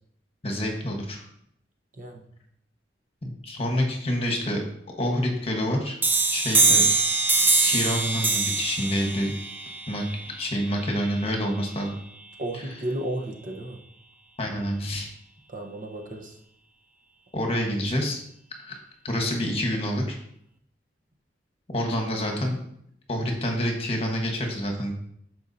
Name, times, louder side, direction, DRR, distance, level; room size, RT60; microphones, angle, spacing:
voice 1, 0.4-1.2 3.2-4.6 5.0-6.0 6.3-6.8 7.6-9.3 9.9-10.0 10.4-12.0 14.4-15.1 17.3-18.2 18.6-18.8 19.0-20.2 21.7-22.6 23.1-24.9, equal, 35° left, 1 dB, 1.3 m, -27 dB
sound 1, 6.0-11.4, right 3 dB, 10° right, 0.5 m, -24 dB
voice 2, 12.4-13.8 15.5-16.4, right 1 dB, 50° right, 2 dB, 1.1 m, -33 dB
11.5 x 4.6 x 2.8 m, 0.69 s
head